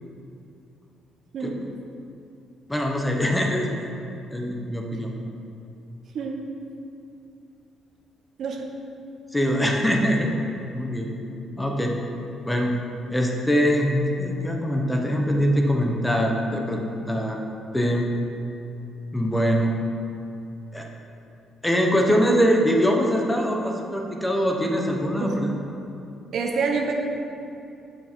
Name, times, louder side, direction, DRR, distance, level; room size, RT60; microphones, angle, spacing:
voice 1, 1.3-1.6 6.1-6.4 8.4-8.7 25.2-25.4 26.3-26.9, right 4 dB, 65° right, 2 dB, 1.0 m, -27 dB
voice 2, 2.7-3.7 4.3-5.1 9.3-10.3 10.7-11.1 11.6-12.0 12.4-12.7 13.1-17.4 17.7-18.2 19.1-19.7 20.7-20.9 21.6-25.5, equal, 10° left, 1 dB, 1.1 m, -23 dB
8.0 x 6.5 x 4.6 m, 2.7 s
cardioid pair, 90°, 0 cm